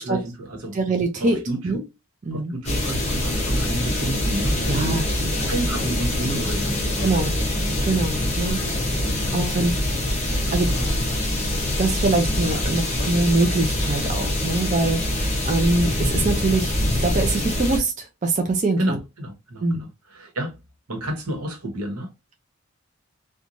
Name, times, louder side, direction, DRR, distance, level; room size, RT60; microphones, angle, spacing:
voice 1, 0.0-0.8 1.2-1.8 2.3-7.3 8.4-8.7 9.2-9.8 10.3-11.2 18.8-20.6 20.9-22.1, right 1 dB, 90° right, 1.1 m, -31 dB
voice 2, 0.7-1.4 1.6-1.8 2.3-2.5 4.7-5.5 7.0-7.4 7.8-8.6 9.3-9.7 10.5-10.7 11.8-16.7 17.0-19.0 19.6-19.9, right 2 dB, 35° right, 0.4 m, -23 dB
sound 1, 2.6-17.8, left 1 dB, 30° left, 0.8 m, -24 dB
3.0 x 2.2 x 2.5 m
head